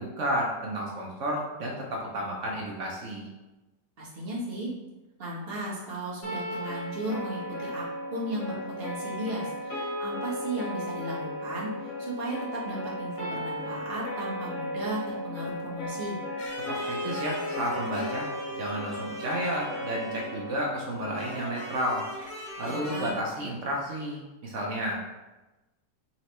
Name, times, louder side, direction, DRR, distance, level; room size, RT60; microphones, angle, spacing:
voice 1, 0.0-3.3 16.7-22.0 22.6-25.1, equal, 65° right, -2 dB, 0.7 m, -32 dB
voice 2, 4.0-4.7 5.2-7.8 8.1-16.2 22.6-23.1, right 1 dB, 40° right, -5 dB, 1.0 m, -35 dB
sound 1, 6.2-22.3, left 1 dB, 75° left, 2.2 m, -36 dB
sound 2, 16.4-20.6 21.1-23.1, equal, 50° left, 1.6 m, -41 dB
4.2 x 3.1 x 2.9 m, 1.1 s
omnidirectional pair, 2.0 m